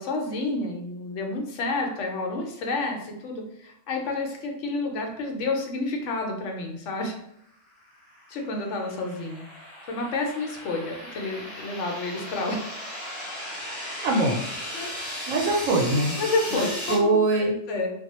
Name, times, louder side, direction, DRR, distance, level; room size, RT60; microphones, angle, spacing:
voice 1, 0.0-7.2 8.3-9.5 9.9-12.7 14.7-14.9 16.2-17.9, left 3 dB, 70° left, 2 dB, 0.9 m, -30 dB
sound 1, 8.0-16.9, left 1 dB, 5° right, 1.0 m, -36 dB
voice 2, 14.0-14.4 15.3-16.2 16.5-17.5, right 2 dB, 85° right, 1 dB, 1.0 m, -23 dB
2.2 x 2.1 x 2.9 m, 0.75 s
omnidirectional pair, 1.3 m